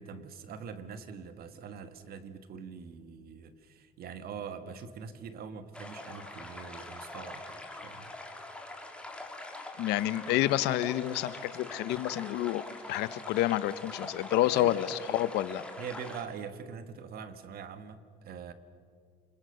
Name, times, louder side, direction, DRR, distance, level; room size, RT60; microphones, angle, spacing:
voice 1, 0.0-8.1 14.4-14.8 15.8-18.5, right 6 dB, 65° right, 11 dB, 1.7 m, -43 dB
sound 1, 5.7-16.2, left 2 dB, 5° left, 3.1 m, -44 dB
voice 2, 9.8-12.6 12.9-15.6, left 14 dB, 90° left, 16 dB, 0.9 m, -29 dB
29.0 x 21.0 x 6.8 m, 2.1 s
cardioid pair, 110°, 17 cm